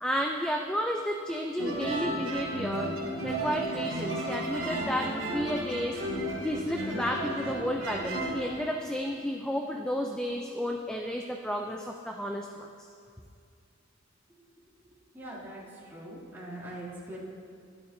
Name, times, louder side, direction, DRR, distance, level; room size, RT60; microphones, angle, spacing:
voice 1, 0.0-2.9 3.2-12.9, equal, 5° left, 2 dB, 0.4 m, -32 dB
sound 1, 1.6-8.6, right 1 dB, 80° right, 2.9 m, -33 dB
voice 2, 15.1-17.2, right 1 dB, 10° right, -10 dB, 2.7 m, -42 dB
12.5 x 11.5 x 2.7 m, 2.3 s
head